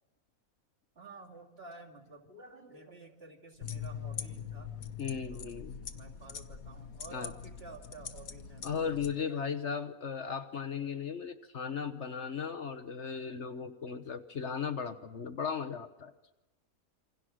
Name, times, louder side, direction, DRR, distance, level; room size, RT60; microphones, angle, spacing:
voice 1, 0.9-4.7 5.3-5.5 5.9-8.7 9.1-9.6, right 3 dB, 40° right, 1 dB, 2.8 m, -51 dB
sound 1, 3.6-9.1, left 7 dB, 70° left, 1.6 m, -43 dB
voice 2, 5.0-5.7 7.1-7.3 8.6-16.1, left 6 dB, 55° left, 10 dB, 1.3 m, -36 dB
27.5 x 25.5 x 6.4 m, 1.1 s
omnidirectional pair, 1.5 m